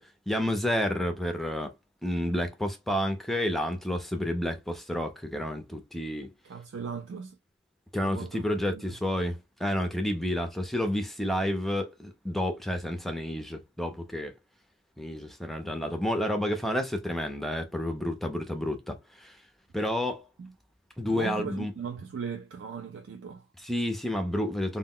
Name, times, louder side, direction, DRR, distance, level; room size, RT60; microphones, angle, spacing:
voice 1, 0.0-1.7 2.0-6.3 7.9-14.3 15.0-19.4 19.7-20.2 21.0-21.7 23.6-24.8, left 1 dB, ahead, 0.4 m, -30 dB
voice 2, 6.4-7.4 8.0-8.8 20.4-20.5 21.0-23.5, right 6 dB, 80° right, 0.4 m, -38 dB
2.2 x 2.0 x 3.6 m
head